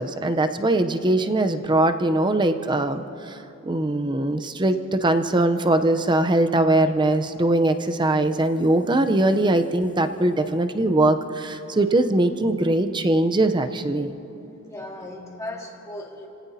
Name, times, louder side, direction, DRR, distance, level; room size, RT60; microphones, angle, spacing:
voice 1, 0.0-3.4 3.6-14.2, right 1 dB, 20° right, 8 dB, 0.6 m, -21 dB
voice 2, 14.6-16.3, left 1 dB, 15° left, -1 dB, 2.0 m, -36 dB
29.5 x 17.5 x 2.8 m, 2.9 s
head